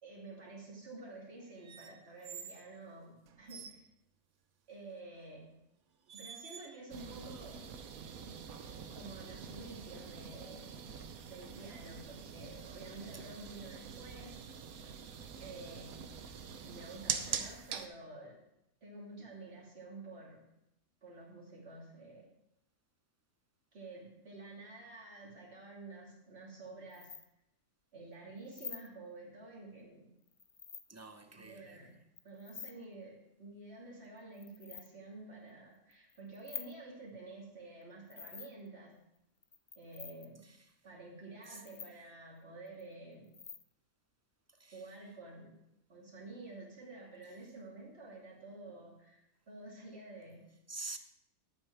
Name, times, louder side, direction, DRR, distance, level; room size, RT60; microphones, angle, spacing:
voice 1, 0.0-3.8 4.7-5.5 6.1-7.6 8.9-10.7 11.3-14.4 15.4-15.9 16.6-18.4 18.8-20.4 21.0-22.3 23.7-27.1 27.9-30.1 31.3-32.0 32.2-39.0 39.8-40.4 40.8-43.3 44.7-45.6 45.9-50.5, right 2 dB, 45° right, -4 dB, 2.9 m, -50 dB
sound 1, 1.6-2.7 3.3-3.8 5.2-5.4 6.1-6.9 7.4-8.2, right 7 dB, 65° right, 1.0 m, -51 dB
sound 2, 6.9-17.9, right 7 dB, 85° right, 1.3 m, -44 dB
sound 3, 26.9-27.3 28.5-28.9 30.3-30.8 32.2-32.7 34.2-34.9 35.9-36.7 38.1-38.7 39.4-40.3 41.4-41.9 42.7-42.8 43.2-43.6, left 6 dB, 55° left, 0.3 m, -47 dB
voice 2, 30.9-31.8 44.6-44.7 50.7-51.0, right 3 dB, 25° right, 7 dB, 0.3 m, -45 dB
10.5 x 8.8 x 4.6 m, 0.84 s
omnidirectional pair, 1.5 m